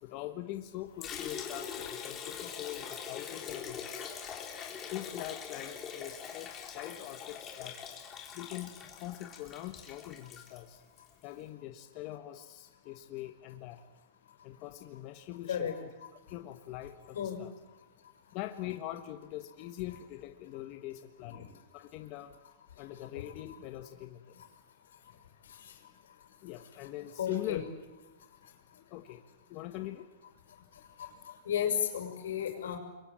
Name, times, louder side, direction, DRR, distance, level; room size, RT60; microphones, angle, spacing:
voice 1, 0.0-4.1 4.9-7.8 8.3-10.8 11.2-13.8 14.4-15.9 16.3-17.5 18.3-21.5 21.7-22.3 22.8-24.3 26.4-27.6 28.7-29.2 29.5-30.1, left 14 dB, 40° left, 6 dB, 1.5 m, -42 dB
Liquid, 1.0-11.1, left 7 dB, 20° left, 3.8 m, -43 dB
voice 2, 27.2-27.6 31.0-31.1 31.4-32.8, left 9 dB, 90° left, 4 dB, 6.4 m, -33 dB
28.5 x 23.0 x 8.9 m, 1.1 s
supercardioid pair, 155°, 0 cm